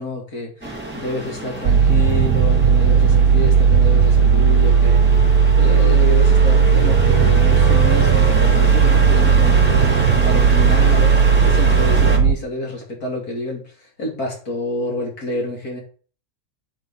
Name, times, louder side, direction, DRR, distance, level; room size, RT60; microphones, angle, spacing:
voice 1, 0.0-5.0 5.6-15.8, left 1 dB, 75° left, -2 dB, 3.6 m, -28 dB
sound 1, 0.6-12.2, right 2 dB, 5° right, 1.9 m, -27 dB
sound 2, 1.6-12.3, right 6 dB, 70° right, 1.0 m, -14 dB
8.3 x 5.6 x 5.6 m, 0.41 s
omnidirectional pair, 1.6 m